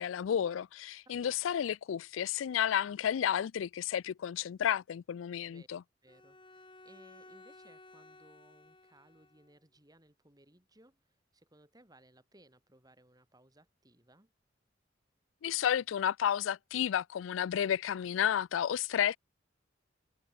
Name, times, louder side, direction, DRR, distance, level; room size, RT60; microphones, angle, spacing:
voice 1, 0.0-5.8 15.4-19.2, left 9 dB, 85° left, 0.3 m, -31 dB
voice 2, 1.2-1.5 5.4-5.7 6.0-14.3, right 1 dB, 20° right, 6.8 m, -63 dB
Bowed string instrument, 6.1-9.6, left 2 dB, 25° left, 7.5 m, -56 dB
head